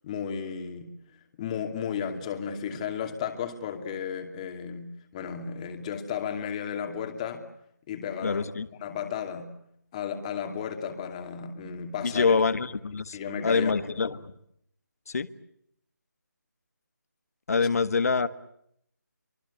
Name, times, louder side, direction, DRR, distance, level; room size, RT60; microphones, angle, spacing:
voice 1, 0.0-0.9 1.4-7.5 7.9-8.4 8.8-9.5 9.9-12.4 13.1-14.1, left 7 dB, 20° left, 5 dB, 2.6 m, -34 dB
voice 2, 8.2-8.7 12.0-13.2 13.4-14.2 15.1-15.3 17.5-18.3, left 4 dB, 55° left, 13 dB, 1.6 m, -25 dB
28.0 x 24.5 x 8.3 m, 0.73 s
figure-of-eight pair, 160°, 10 cm